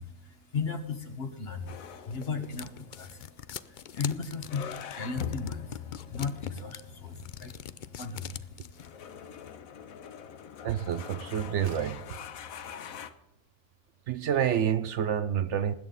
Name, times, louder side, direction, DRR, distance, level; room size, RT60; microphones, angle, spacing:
voice 1, 0.0-9.5, left 5 dB, 50° left, 7 dB, 1.6 m, -37 dB
sound 1, 1.6-8.9, left 9 dB, 65° left, 0.5 m, -42 dB
sound 2, 1.7-13.1, left 8 dB, 85° left, 1.3 m, -44 dB
Slam, 9.2-9.6 11.1-11.2 11.6-12.2, right 4 dB, 85° right, 1.6 m, -49 dB
voice 2, 10.6-12.2 14.1-15.7, right 9 dB, 65° right, 13 dB, 0.9 m, -28 dB
20.0 x 8.8 x 4.0 m, 0.90 s
omnidirectional pair, 1.4 m